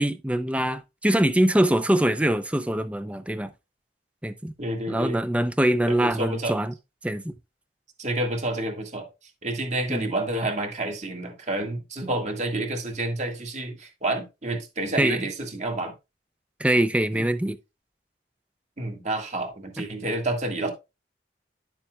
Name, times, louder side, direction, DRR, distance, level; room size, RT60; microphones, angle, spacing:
voice 1, 0.0-3.5 4.2-4.5 4.9-6.7 7.0-7.3 9.9-10.1 15.0-15.2 16.6-17.6, right 1 dB, 5° right, 0.5 m, -23 dB
voice 2, 4.6-5.2 5.9-6.6 8.0-9.1 9.4-15.9 17.1-17.3 18.8-20.7, right 2 dB, 40° right, 1.9 m, -29 dB
11.0 x 7.1 x 2.3 m
head